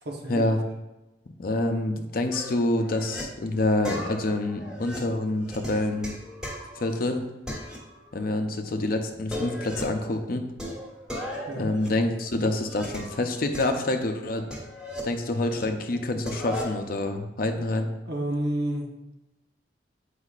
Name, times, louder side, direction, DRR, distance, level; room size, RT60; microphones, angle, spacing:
voice 1, 0.0-0.4 11.5-11.7 18.0-18.9, right 1 dB, 65° right, 0 dB, 1.0 m, -30 dB
voice 2, 1.4-6.2 6.8-7.2 8.1-10.5 11.6-14.4 15.0-17.9, left 2 dB, 55° left, 6 dB, 0.6 m, -27 dB
sound 1, 2.3-3.2 3.8-7.1 7.5-8.4 8.6-8.7 9.1-10.0 10.6-13.2 13.5-15.6 15.9-16.8, left 1 dB, 5° right, 1.5 m, -38 dB
8.2 x 4.9 x 2.4 m, 1.0 s
head